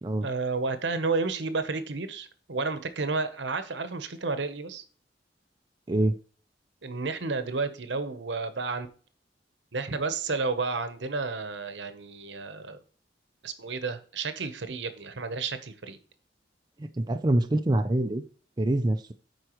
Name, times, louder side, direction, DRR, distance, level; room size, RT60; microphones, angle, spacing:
voice 1, 0.2-4.8 6.8-8.9 9.7-12.8 13.4-16.0, right 4 dB, 70° right, 0.9 m, -31 dB
voice 2, 5.9-6.2 16.8-18.2 18.6-19.0, right 1 dB, 25° right, 0.5 m, -25 dB
12.5 x 4.6 x 3.0 m
head